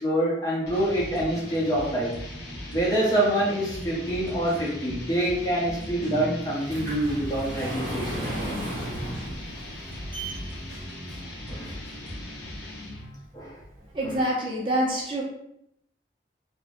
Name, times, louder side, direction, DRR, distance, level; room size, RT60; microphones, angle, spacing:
voice 1, 0.0-2.2 2.7-8.3 11.5-11.8 13.3-13.6 14.0-14.1, right 1 dB, 20° left, -5 dB, 0.6 m, -26 dB
sound 1, 0.6-3.1 3.7-6.2 6.6-9.3 9.9-12.7, equal, 70° right, 0.8 m, -42 dB
sound 2, 0.7-13.2, left 1 dB, 70° left, 0.6 m, -40 dB
sound 3, 6.0-12.1 12.7-12.8 13.3-13.4 13.7-13.8, right 1 dB, 50° right, 1.1 m, -35 dB
voice 2, 13.9-15.2, right 1 dB, 30° right, -4 dB, 0.5 m, -26 dB
3.1 x 2.0 x 2.4 m, 0.76 s
head